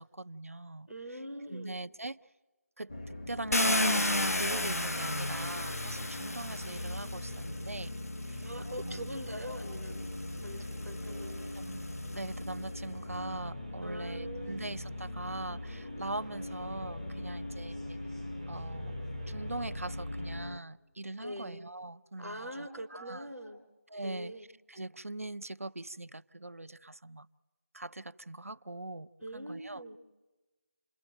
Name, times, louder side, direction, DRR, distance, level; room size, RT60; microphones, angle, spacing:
voice 1, 0.0-1.2 1.5-2.2 2.8-4.1 4.4-7.9 8.3-8.5 8.8-9.2 11.5-11.8 12.1-18.0 18.5-18.9 19.3-23.3 23.9-27.3 27.7-30.0, right 2 dB, 70° right, 0.8 m, -41 dB
voice 2, 0.9-1.8 8.4-10.0 10.4-11.5 13.8-14.7 21.2-21.6 22.2-23.6 24.0-24.4 29.2-30.0, equal, 5° left, 0.8 m, -43 dB
sound 1, 2.9-20.6, left 1 dB, 25° left, 1.1 m, -41 dB
Car, 3.5-7.6 8.6-8.7 9.2-12.5, left 1 dB, 85° left, 1.2 m, -33 dB
sound 2, 13.3-20.4, right 2 dB, 30° right, 0.8 m, -52 dB
28.5 x 22.5 x 9.0 m
figure-of-eight pair, 175°, 8 cm